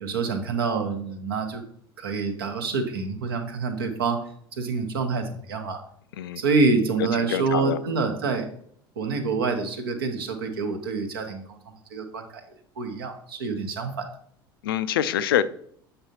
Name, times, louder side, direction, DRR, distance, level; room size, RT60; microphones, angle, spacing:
voice 1, 0.0-1.6 2.0-4.2 4.6-5.8 6.4-8.5 9.0-11.4 11.9-12.4 12.8-14.1, right 4 dB, 70° right, 6 dB, 1.0 m, -26 dB
voice 2, 7.3-7.8 14.6-15.4, left 11 dB, 65° left, 14 dB, 0.4 m, -25 dB
7.8 x 5.4 x 2.8 m, 0.64 s
figure-of-eight pair, 70°, 13 cm